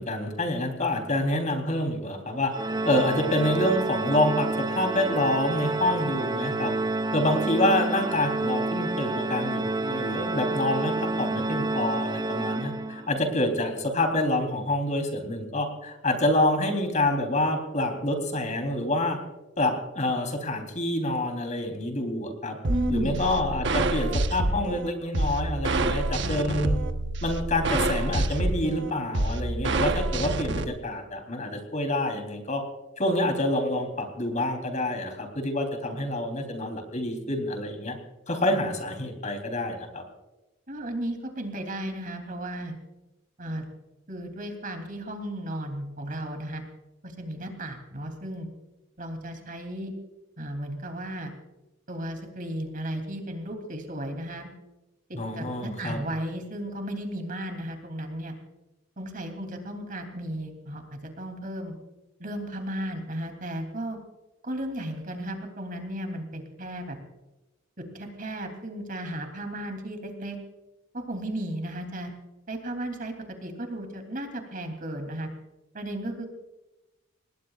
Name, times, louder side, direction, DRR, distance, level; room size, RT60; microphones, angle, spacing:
voice 1, 0.0-2.5 2.8-6.7 7.1-19.2 19.6-22.6 22.9-26.8 27.2-32.6 33.0-38.0 38.3-40.0 55.1-56.0, left 1 dB, 40° left, 5 dB, 3.6 m, -27 dB
Organ, 2.5-13.2, right 2 dB, 25° right, 0.5 m, -29 dB
sound 1, 22.6-30.6, right 2 dB, 60° right, 1.1 m, -27 dB
voice 2, 22.7-23.2 40.7-42.7 43.4-43.7 44.1-46.6 47.0-48.5 49.0-49.9 50.4-51.3 51.9-54.5 55.1-58.3 59.0-61.7 62.2-64.0 64.4-67.0 67.9-70.4 70.9-72.1 72.5-73.1 73.4-75.3 75.7-76.3, right 1 dB, 45° right, 5 dB, 3.1 m, -34 dB
27.5 x 20.0 x 2.5 m, 1.0 s
head